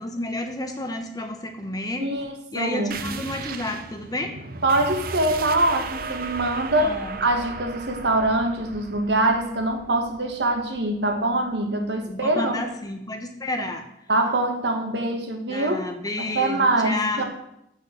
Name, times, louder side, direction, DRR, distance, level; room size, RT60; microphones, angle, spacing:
voice 1, 0.0-2.1 2.5-4.3 6.8-7.2 12.1-13.8 15.5-17.2, left 2 dB, 20° left, 5 dB, 1.1 m, -30 dB
voice 2, 2.0-3.0 4.6-6.9 7.2-12.5 14.1-15.8 16.2-17.2, right 2 dB, 70° right, 4 dB, 1.5 m, -24 dB
sound 1, 2.9-12.1, right 4 dB, 55° right, 0.7 m, -36 dB
7.9 x 6.3 x 6.3 m, 0.79 s
head